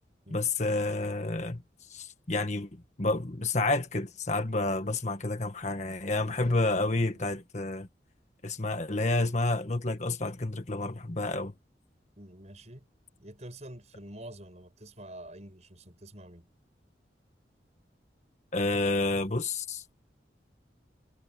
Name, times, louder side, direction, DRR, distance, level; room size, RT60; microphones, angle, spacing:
voice 1, 0.3-1.6 1.9-2.7 3.0-7.9 8.4-11.5 18.5-19.8, left 2 dB, 40° left, 1.6 m, -29 dB
voice 2, 6.2-6.6 7.0-7.2 12.2-12.9 13.2-16.5, right 1 dB, 40° right, 6.8 m, -47 dB
head